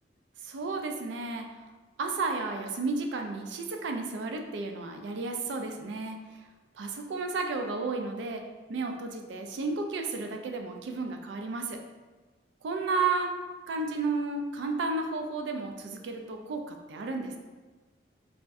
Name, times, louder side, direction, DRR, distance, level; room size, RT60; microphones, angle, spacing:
voice 1, 0.4-1.4 2.0-6.2 6.7-8.4 8.7-11.8 12.6-13.3 13.7-17.4, right 3 dB, 70° right, 4 dB, 0.3 m, -32 dB
2.5 x 2.1 x 3.5 m, 1.3 s
head